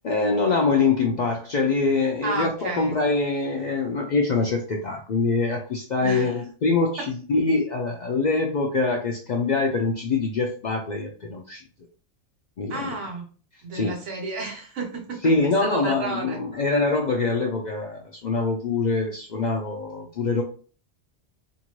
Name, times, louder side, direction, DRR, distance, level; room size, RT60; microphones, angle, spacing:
voice 1, 0.0-11.6 12.6-12.9 13.7-13.9 15.2-20.4, left 3 dB, 60° left, 1 dB, 0.4 m, -24 dB
voice 2, 2.2-3.0 6.0-6.4 7.0-7.1 12.7-13.3 13.6-15.3 15.6-16.4, right 3 dB, 85° right, 2 dB, 1.3 m, -31 dB
2.7 x 2.6 x 3.0 m, 0.39 s
omnidirectional pair, 1.2 m